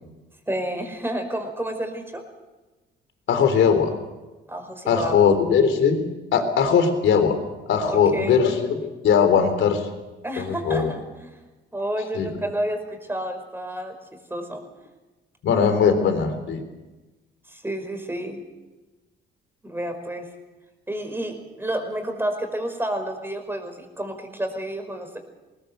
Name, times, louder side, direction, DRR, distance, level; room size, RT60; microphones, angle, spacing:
voice 1, 0.5-2.2 4.5-5.2 7.9-8.4 10.2-11.4 11.7-13.9 14.3-14.6 17.5-18.4 19.6-20.3 20.9-25.2, right 1 dB, 10° right, 5 dB, 5.2 m, -30 dB
voice 2, 3.3-3.9 4.9-6.0 6.3-7.4 7.7-9.9 10.4-10.9 12.1-12.3 15.4-16.6, left 6 dB, 75° left, 7 dB, 3.6 m, -20 dB
21.0 x 19.5 x 7.8 m, 1.1 s
cardioid pair, 90°, 20 cm